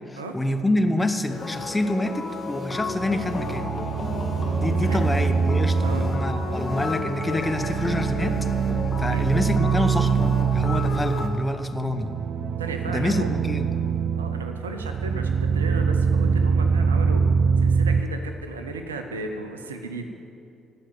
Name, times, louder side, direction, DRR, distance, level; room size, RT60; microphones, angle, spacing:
voice 1, 0.1-3.8 4.6-8.5 9.0-12.2 12.9-13.7, left 1 dB, 15° left, 7 dB, 0.9 m, -27 dB
sound 1, 1.3-11.3, left 3 dB, 40° left, 1.6 m, -33 dB
sound 2, 2.7-18.0, right 6 dB, 55° right, 0.4 m, -24 dB
voice 2, 5.8-6.2 9.1-9.3 12.6-13.3 14.2-17.2 17.6-20.1, right 3 dB, 80° right, 6 dB, 0.7 m, -35 dB
15.5 x 5.4 x 9.2 m, 2.6 s
figure-of-eight pair, 45°, 0 cm